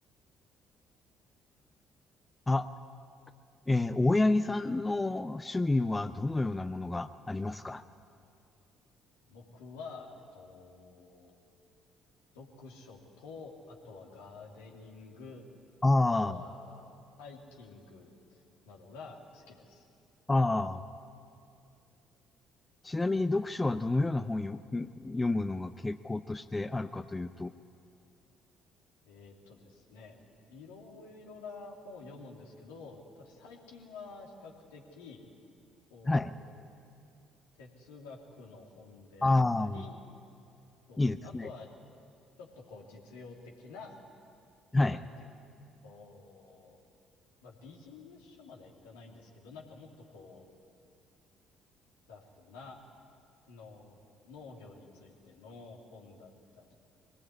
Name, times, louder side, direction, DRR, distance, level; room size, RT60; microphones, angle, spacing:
voice 1, 3.7-7.8 15.8-16.4 20.3-20.8 22.8-27.5 36.0-36.3 39.2-39.9 41.0-41.5 44.7-45.0, left 2 dB, 20° left, 11 dB, 0.7 m, -29 dB
voice 2, 9.3-11.4 12.3-15.5 16.2-16.9 17.2-19.8 29.0-30.2 30.5-35.3 35.9-36.5 37.6-39.3 39.6-39.9 40.9-41.7 42.4-44.0 44.8-45.3 45.8-46.8 47.4-50.5 52.1-52.8 53.5-54.0 54.2-56.7, left 4 dB, 75° left, 0 dB, 2.8 m, -50 dB
23.0 x 18.5 x 9.7 m, 2.5 s
hypercardioid pair, 50°, 0 cm